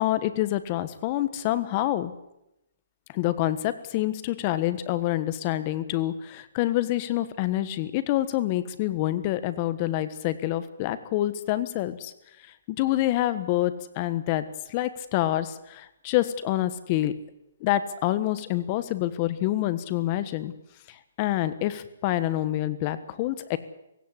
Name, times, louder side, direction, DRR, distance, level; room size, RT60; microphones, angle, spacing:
voice 1, 0.0-2.1 3.1-12.1 12.7-17.1 17.6-20.5 20.9-23.6, left 14 dB, 30° left, 13 dB, 1.4 m, -27 dB
17.5 x 17.0 x 9.9 m, 0.86 s
hypercardioid pair, 160°, 0 cm